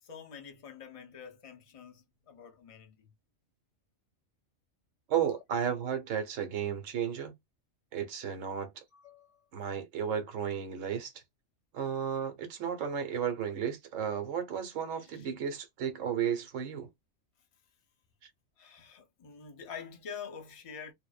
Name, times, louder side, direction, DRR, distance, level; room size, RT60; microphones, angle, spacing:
voice 1, 0.0-3.1 5.1-5.4 8.9-9.5 14.9-15.3 18.6-20.9, left 6 dB, 55° left, 0.3 m, -47 dB
voice 2, 5.1-7.3 7.9-8.8 9.5-11.1 11.7-16.9, right 8 dB, 70° right, 1.1 m, -33 dB
2.5 x 2.1 x 2.4 m
omnidirectional pair, 1.4 m